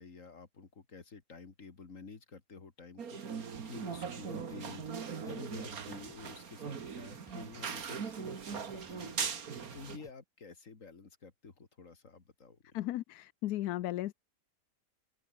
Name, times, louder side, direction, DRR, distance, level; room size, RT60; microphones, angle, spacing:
voice 1, 0.0-12.8, left 4 dB, 50° left, 2.8 m, -50 dB
sound 1, 3.0-10.0, right 6 dB, 60° right, 2.1 m, -40 dB
sound 2, 4.2-10.1, equal, ahead, 5.4 m, -61 dB
voice 2, 12.7-14.1, left 15 dB, 75° left, 1.1 m, -35 dB
open air
omnidirectional pair, 1.8 m